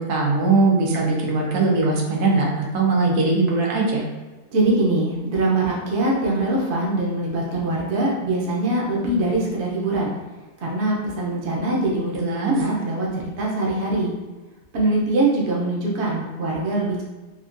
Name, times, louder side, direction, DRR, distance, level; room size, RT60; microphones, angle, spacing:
voice 1, 0.0-4.0 12.1-12.5, right 3 dB, 80° right, -2 dB, 1.2 m, -20 dB
voice 2, 4.5-10.1 10.6-12.2 12.5-14.2 14.7-17.0, right 2 dB, 55° right, -3 dB, 0.9 m, -23 dB
3.6 x 2.4 x 2.5 m, 1.3 s
omnidirectional pair, 1.6 m